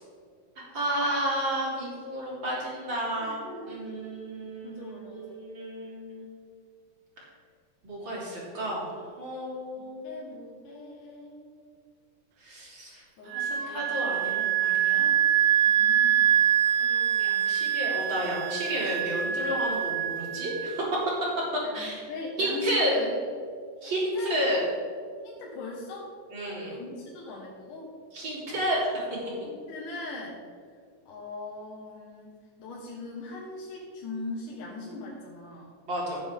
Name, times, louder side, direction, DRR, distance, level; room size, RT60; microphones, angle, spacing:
voice 1, 0.6-6.2 7.8-10.3 12.4-15.1 16.7-21.0 21.7-22.0 22.4-23.0 23.8-24.7 26.3-26.7 28.1-29.0 35.9-36.2, equal, 35° right, -5 dB, 3.5 m, -31 dB
voice 2, 3.2-3.9 4.6-5.4 9.8-11.5 13.2-13.9 15.7-16.4 21.7-23.3 23.8-24.4 25.2-26.1 26.7-27.9 29.4-30.4 31.1-32.3 32.6-35.7, left 2 dB, 75° left, -4 dB, 2.8 m, -40 dB
Wind instrument woodwind instrument, 13.3-20.8, right 10 dB, 80° right, 2.0 m, -25 dB
16.0 x 7.5 x 3.7 m, 2.1 s
omnidirectional pair, 3.8 m